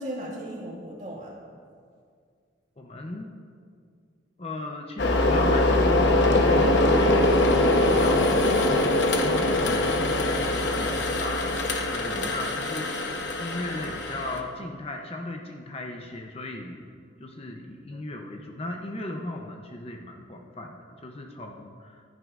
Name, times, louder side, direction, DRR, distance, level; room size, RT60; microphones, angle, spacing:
voice 1, 0.0-1.3 8.1-8.8 12.1-12.3, right 1 dB, 40° right, -3 dB, 1.9 m, -37 dB
voice 2, 2.8-3.3 4.4-7.5 7.8-16.8 17.2-22.0, left 1 dB, 30° left, 3 dB, 0.6 m, -37 dB
sound 1, 5.0-14.4, left 1 dB, 70° left, 0.9 m, -23 dB
14.5 x 11.0 x 2.5 m, 2.2 s
head